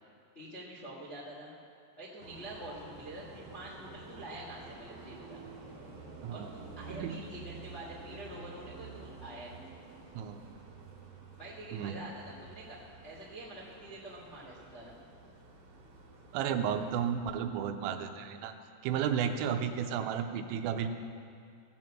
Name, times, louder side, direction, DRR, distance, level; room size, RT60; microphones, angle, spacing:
voice 1, 0.3-1.5 2.0-5.4 6.3-9.5 11.4-12.8 13.0-15.0, right 1 dB, 75° left, -7 dB, 0.6 m, -46 dB
sound 1, 2.2-17.1, right 4 dB, 45° right, 2.8 m, -50 dB
voice 2, 16.3-18.5 18.8-20.9, right 8 dB, 85° right, 7 dB, 2.9 m, -33 dB
16.5 x 6.1 x 7.6 m, 2.3 s
omnidirectional pair, 5.3 m